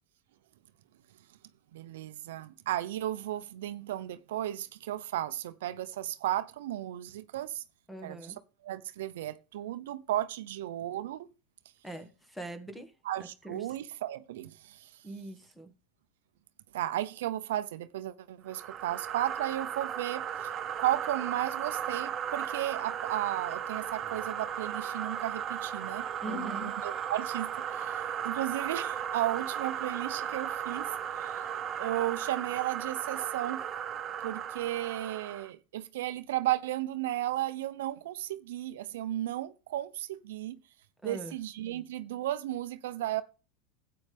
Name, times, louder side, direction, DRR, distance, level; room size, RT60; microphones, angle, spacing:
voice 1, 1.7-7.6 8.0-8.2 8.6-11.3 13.1-14.8 16.7-20.2 20.8-30.9 31.2-31.3 31.8-33.6 34.2-40.6 41.0-43.2, right 13 dB, 80° right, 0.7 m, -34 dB
voice 2, 7.9-8.4 11.8-12.9 13.2-13.6 15.0-15.7 26.2-26.7 41.0-41.4, right 1 dB, 5° left, 1.7 m, -42 dB
sound 1, 18.5-35.5, right 9 dB, 35° right, 1.1 m, -36 dB
12.0 x 8.6 x 3.5 m
supercardioid pair, 120°, 0 cm